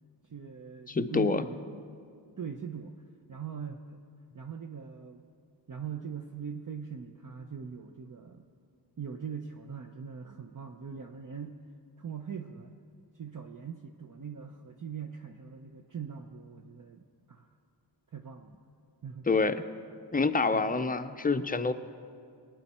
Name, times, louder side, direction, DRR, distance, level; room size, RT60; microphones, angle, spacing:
voice 1, 0.3-1.6 2.4-3.0 3.3-4.0 4.3-5.2 5.7-8.5 9.0-11.6 12.0-12.7 13.1-17.5 18.1-18.6 19.0-19.4 20.5-20.7, right 7 dB, 45° right, 4 dB, 0.7 m, -41 dB
voice 2, 0.9-1.4 19.3-19.6 20.1-21.7, left 4 dB, 20° left, 9 dB, 0.5 m, -27 dB
20.5 x 9.2 x 4.3 m, 2.3 s
wide cardioid pair, 70°, 44 cm